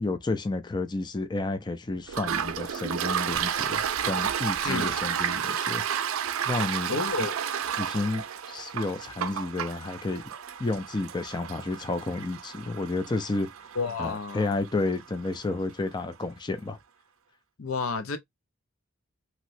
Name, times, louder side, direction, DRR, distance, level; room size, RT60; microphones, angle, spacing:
voice 1, 0.0-5.8 6.5-6.9 7.2-7.3 7.8-10.2 10.6-13.5 14.0-16.8, left 2 dB, 20° left, 0.5 m, -31 dB
Toilet flush, 2.1-15.5, right 8 dB, 85° right, 0.4 m, -32 dB
voice 2, 4.6-5.0 6.9-7.4 13.8-14.5 17.6-18.2, left 4 dB, 80° left, 0.7 m, -30 dB
3.0 x 2.9 x 2.6 m
head